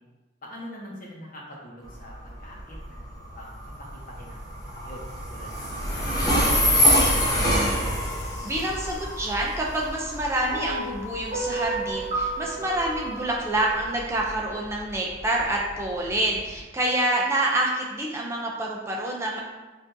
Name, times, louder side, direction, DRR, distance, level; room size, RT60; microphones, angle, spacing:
voice 1, 0.4-3.0 3.3-3.9 4.2-5.0 5.3-7.2, equal, 45° left, -3 dB, 0.9 m, -43 dB
Train, 1.8-16.6, equal, 20° left, 0.8 m, -27 dB
voice 2, 8.4-19.4, right 1 dB, 15° right, -2 dB, 0.4 m, -27 dB
sound 1, 10.5-14.8, right 2 dB, 30° right, 1.2 m, -33 dB
5.7 x 2.6 x 2.6 m, 1.2 s
head